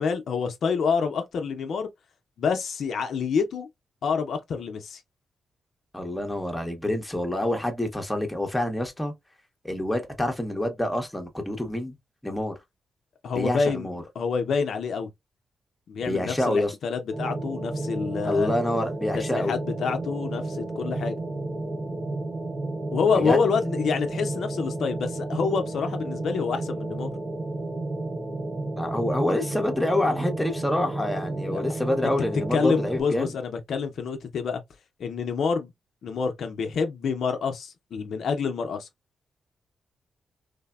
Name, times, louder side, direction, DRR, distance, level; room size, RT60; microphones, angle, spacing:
voice 1, 0.0-1.9 2.4-3.7 4.0-5.0 13.2-13.9 14.2-15.1 15.9-18.5 19.1-21.2 22.9-27.1 31.5-31.6 32.0-32.1 32.5-34.6 35.0-35.7 36.0-38.9, left 5 dB, 70° left, 0.5 m, -27 dB
voice 2, 5.9-9.1 9.6-11.9 12.2-12.5 13.4-14.0 16.1-16.7 18.3-19.6 23.2-23.4 28.8-33.3, left 1 dB, 5° left, 0.7 m, -27 dB
sound 1, 17.1-33.0, right 2 dB, 35° right, 0.6 m, -32 dB
3.3 x 2.0 x 2.2 m
cardioid pair, 120°, 0 cm